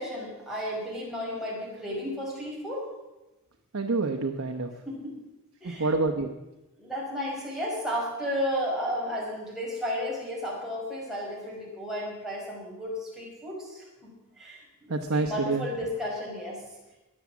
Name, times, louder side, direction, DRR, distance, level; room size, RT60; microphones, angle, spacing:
voice 1, 0.0-2.9 4.9-5.2 5.6-6.0 6.8-16.6, equal, ahead, -5 dB, 5.1 m, -33 dB
voice 2, 3.7-4.7 5.8-6.3 14.9-15.6, right 3 dB, 80° right, 4 dB, 1.0 m, -27 dB
21.0 x 7.4 x 7.3 m, 1.0 s
head